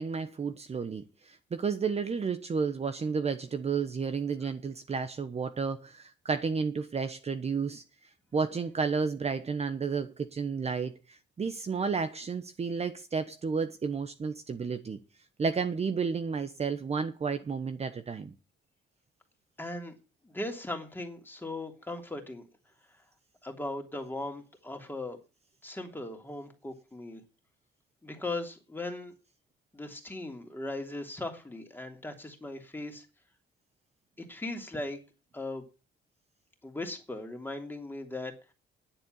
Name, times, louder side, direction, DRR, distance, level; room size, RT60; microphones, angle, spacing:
voice 1, 0.0-7.8 8.3-15.0 15.4-18.3, right 5 dB, 30° right, 1.1 m, -32 dB
voice 2, 19.6-20.0 20.2-22.5 23.4-25.2 25.6-27.2 28.0-29.1 29.7-33.0 34.2-35.0 35.3-35.6 36.6-38.5, left 2 dB, 10° left, 3.1 m, -38 dB
10.0 x 7.9 x 9.3 m
cardioid pair, 115°, 20 cm